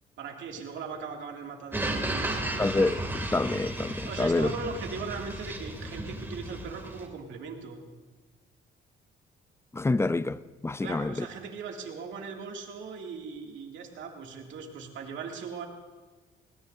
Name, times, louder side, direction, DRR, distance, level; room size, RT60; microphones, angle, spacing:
voice 1, 0.2-2.7 4.0-7.8 10.8-15.7, right 5 dB, 70° right, 2.3 m, -39 dB
sound 1, 1.7-7.1, right 1 dB, 10° right, 2.4 m, -34 dB
voice 2, 2.6-4.5 9.7-11.3, left 2 dB, 15° left, 0.4 m, -27 dB
21.0 x 17.5 x 2.6 m
cardioid pair, 90°, 20 cm